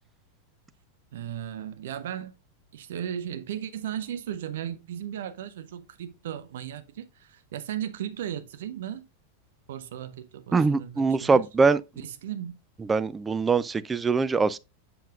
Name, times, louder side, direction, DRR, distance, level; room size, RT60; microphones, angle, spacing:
voice 1, 1.1-2.3 2.7-9.0 9.7-11.5 12.0-12.6, right 10 dB, 60° right, 0.7 m, -36 dB
voice 2, 10.5-11.8 12.9-14.6, right 4 dB, 15° right, 0.4 m, -23 dB
7.3 x 6.8 x 2.4 m
figure-of-eight pair, 90°, 0 cm